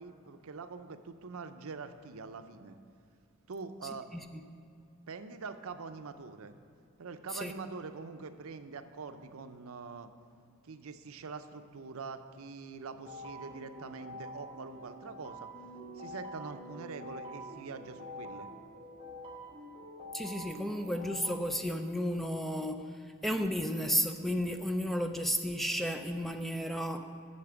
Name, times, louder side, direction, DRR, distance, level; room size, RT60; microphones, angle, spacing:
voice 1, 0.0-2.8 3.5-4.1 5.1-6.5 7.0-10.1 10.6-15.5 16.0-18.5, right 4 dB, 75° right, 9 dB, 0.6 m, -44 dB
sound 1, 13.0-21.4, equal, 25° right, 1.3 m, -46 dB
voice 2, 20.1-22.9 23.2-27.1, equal, ahead, 6 dB, 0.4 m, -33 dB
8.5 x 6.8 x 6.9 m, 2.4 s
head